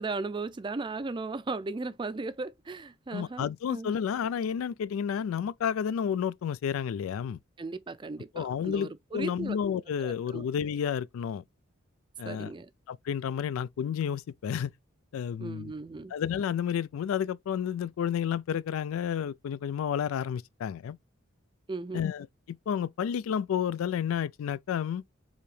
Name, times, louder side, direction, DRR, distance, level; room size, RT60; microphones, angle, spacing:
voice 1, 0.0-3.9 7.6-9.6 10.0-10.5 12.2-12.7 15.4-16.1 21.7-22.1, right 3 dB, 25° right, 0.4 m, -36 dB
voice 2, 3.1-7.4 8.3-11.4 12.2-12.5 12.9-14.7 15.1-15.7 16.1-21.0 21.9-25.0, left 8 dB, 90° left, 0.3 m, -31 dB
4.8 x 2.7 x 3.1 m
head